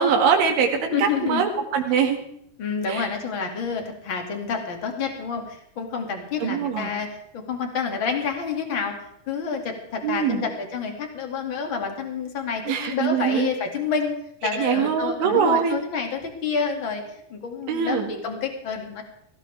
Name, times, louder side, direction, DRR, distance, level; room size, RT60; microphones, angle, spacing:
voice 1, 0.0-2.2 2.9-3.1 6.4-6.9 10.0-10.4 12.7-13.5 14.5-15.8 17.7-18.1, right 7 dB, 85° right, 4 dB, 4.6 m, -22 dB
voice 2, 0.9-1.4 1.9-2.0 2.6-7.1 7.3-8.9 9.3-14.1 14.4-19.0, left 6 dB, 35° left, 3 dB, 2.3 m, -28 dB
22.0 x 16.5 x 3.5 m, 0.72 s
omnidirectional pair, 5.4 m